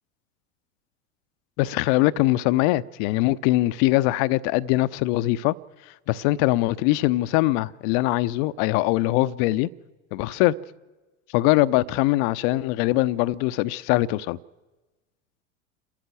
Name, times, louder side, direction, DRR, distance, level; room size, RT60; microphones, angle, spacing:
voice 1, 1.6-5.5 6.1-9.7 10.1-10.5 11.3-14.4, left 17 dB, 45° left, 16 dB, 0.7 m, -22 dB
28.5 x 13.5 x 7.8 m, 1.2 s
figure-of-eight pair, 80°, 39 cm